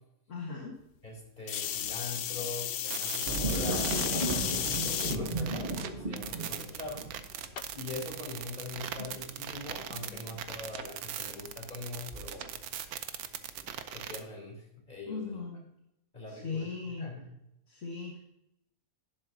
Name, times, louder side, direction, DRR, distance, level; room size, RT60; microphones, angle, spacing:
voice 1, 0.3-0.8 5.0-5.6 9.9-10.4 15.1-15.7 16.3-17.1 17.7-18.2, left 4 dB, 55° left, -1 dB, 1.8 m, -39 dB
voice 2, 1.0-7.1 7.7-12.6 13.9-15.4 16.1-16.7 17.0-17.3, left 2 dB, 30° left, -2 dB, 3.7 m, -42 dB
sound 1, 1.5-5.2 5.8-6.3 7.6-7.7, left 10 dB, 75° left, 0.5 m, -33 dB
sound 2, 2.9-14.2, right 10 dB, 80° right, 1.2 m, -40 dB
sound 3, 3.2-12.9 13.3-13.8, right 2 dB, 35° right, 1.4 m, -36 dB
11.5 x 11.0 x 2.7 m, 0.79 s
omnidirectional pair, 1.6 m